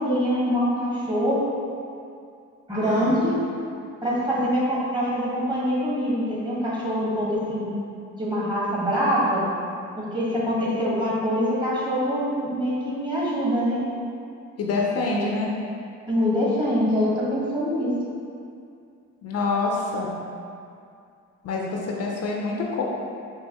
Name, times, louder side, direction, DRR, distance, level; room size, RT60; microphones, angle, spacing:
voice 1, 0.0-1.4 2.7-3.3 4.0-7.7 8.2-9.4 10.0-13.8 15.1-15.2 16.1-17.9, equal, 15° right, -7 dB, 1.5 m, -24 dB
voice 2, 2.8-3.2 14.6-15.5 19.2-20.2 21.4-22.8, left 3 dB, 55° left, -2 dB, 0.6 m, -26 dB
5.5 x 2.9 x 3.0 m, 2.4 s
cardioid pair, 90°, 30 cm